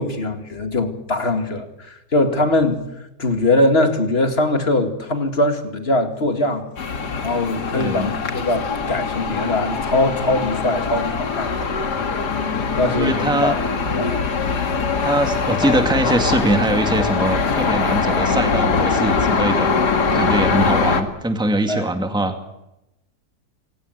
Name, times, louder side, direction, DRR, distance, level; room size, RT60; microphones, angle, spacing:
voice 1, 0.0-2.8 3.2-6.7 7.2-11.5 12.0-12.3 12.8-13.5 13.9-14.3 21.7-21.9, left 2 dB, 35° left, 7 dB, 2.5 m, -21 dB
sound 1, 6.8-21.0, left 5 dB, 75° left, 2.6 m, -22 dB
voice 2, 7.7-8.1 13.0-13.6 15.0-19.7 20.1-22.4, right 1 dB, 5° right, 6 dB, 2.0 m, -22 dB
27.0 x 19.0 x 8.1 m, 0.90 s
omnidirectional pair, 1.7 m